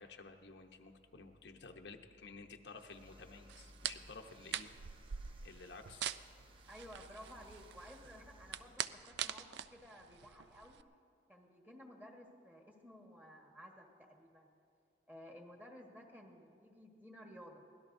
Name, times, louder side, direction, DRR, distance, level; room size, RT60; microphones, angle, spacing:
voice 1, 0.0-4.7 5.4-6.0, left 4 dB, 80° left, 4 dB, 0.9 m, -53 dB
sound 1, 2.6-8.8, equal, 30° right, 0.8 m, -60 dB
sound 2, 3.5-10.8, right 9 dB, 70° right, 0.4 m, -44 dB
voice 2, 6.7-10.8 11.3-14.5 15.1-17.6, equal, 10° right, 1 dB, 1.4 m, -55 dB
23.5 x 17.5 x 2.6 m, 2.4 s
head